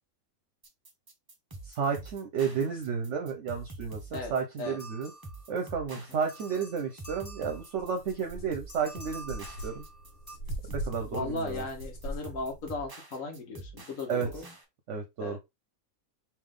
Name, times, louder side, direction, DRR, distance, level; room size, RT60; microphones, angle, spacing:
sound 1, 0.6-14.6, right 2 dB, 25° right, 0.5 m, -46 dB
voice 1, 1.7-5.1 5.5-9.8 10.7-11.7 14.1-14.3 14.9-15.4, right 6 dB, 65° right, 0.9 m, -32 dB
voice 2, 4.1-4.8 5.9-6.0 11.1-14.4 15.2-15.4, left 3 dB, 70° left, 1.4 m, -37 dB
sound 2, 4.6-5.8 6.3-8.0 8.7-10.4, right 1 dB, 15° left, 1.3 m, -49 dB
sound 3, 7.2-7.3 7.7-12.8, right 1 dB, 90° left, 1.4 m, -41 dB
3.4 x 2.9 x 3.5 m
omnidirectional pair, 1.5 m